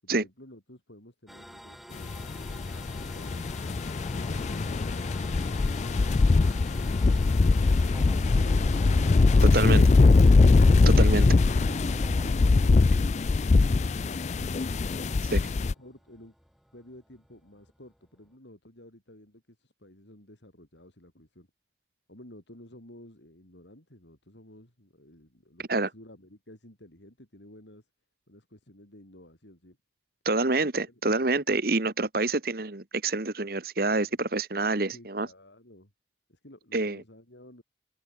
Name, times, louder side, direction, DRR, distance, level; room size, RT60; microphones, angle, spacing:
voice 1, 0.0-3.6 15.3-16.3 16.7-21.5 22.1-27.9 28.3-29.8 30.9-31.0 33.9-34.2 34.9-35.9 36.3-37.6, left 1 dB, 80° left, 6.8 m, -52 dB
sound 1, 1.3-18.4, equal, ahead, 3.1 m, -51 dB
sound 2, 2.0-15.7, left 3 dB, 40° left, 0.4 m, -22 dB
sound 3, 7.9-12.3, equal, 15° right, 6.0 m, -40 dB
voice 2, 9.4-9.8 11.0-11.3 15.3-15.4 25.7-25.9 30.2-35.3 36.7-37.0, right 3 dB, 55° right, 1.4 m, -27 dB
head